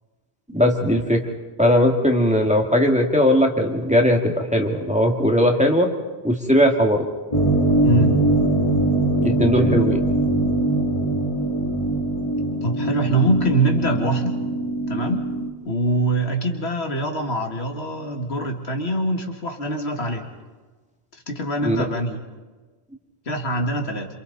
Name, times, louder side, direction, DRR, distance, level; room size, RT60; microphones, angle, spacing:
voice 1, 0.5-1.2 1.6-5.9 6.2-7.0 9.2-10.0 21.6-21.8, equal, 5° right, 1 dB, 2.0 m, -19 dB
sound 1, 7.3-15.5, right 2 dB, 30° left, 2.7 m, -22 dB
voice 2, 7.8-8.2 12.6-14.4 14.9-15.2 15.6-20.3 21.3-22.2 23.3-24.1, right 1 dB, 90° left, 2 dB, 2.2 m, -23 dB
27.5 x 27.0 x 4.1 m, 1.3 s
omnidirectional pair, 1.1 m